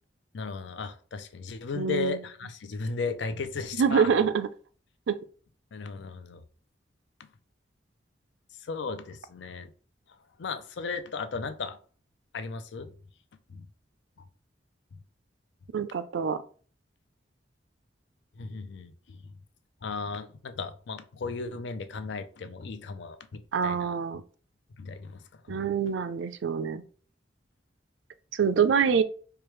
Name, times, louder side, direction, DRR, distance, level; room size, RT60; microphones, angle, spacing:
voice 1, 0.3-4.1 5.7-6.4 8.6-9.7 10.4-11.8 12.3-12.9 13.5-13.7 18.4-19.3 19.8-23.9 24.8-25.7, left 4 dB, 75° left, 0.5 m, -36 dB
voice 2, 1.7-2.2 3.8-4.5 5.1-5.2 15.7-16.4 23.5-24.2 25.5-26.8 28.3-29.0, right 6 dB, 85° right, 0.4 m, -25 dB
4.7 x 2.3 x 3.1 m
head